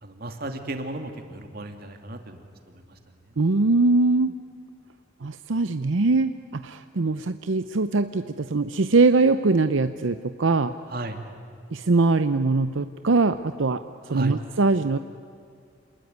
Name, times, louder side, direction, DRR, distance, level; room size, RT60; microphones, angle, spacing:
voice 1, 0.0-3.0 10.9-11.2 14.1-14.4, right 2 dB, 50° right, 5 dB, 2.5 m, -35 dB
voice 2, 3.4-4.4 5.2-10.7 11.7-13.8 14.1-15.0, right 3 dB, 80° right, 10 dB, 0.7 m, -22 dB
28.0 x 20.5 x 9.6 m, 2.5 s
head